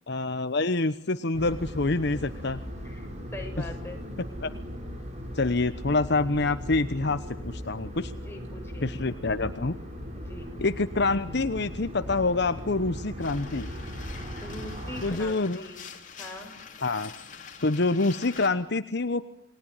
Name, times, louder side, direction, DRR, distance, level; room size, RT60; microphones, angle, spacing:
voice 1, 0.1-2.6 4.4-4.5 5.3-8.1 8.8-9.8 10.6-13.7 15.0-15.6 16.8-17.1 17.6-19.2, left 3 dB, 60° left, 11 dB, 1.1 m, -26 dB
sound 1, 1.3-15.1, equal, 35° right, 7.9 m, -38 dB
voice 2, 2.8-4.0 8.1-8.9 10.2-10.5 14.4-15.9 16.2-16.5, left 2 dB, 15° left, 2 dB, 7.0 m, -42 dB
sound 2, 13.2-18.5, left 6 dB, 45° left, 3.5 m, -45 dB
29.0 x 21.5 x 9.0 m, 0.76 s
head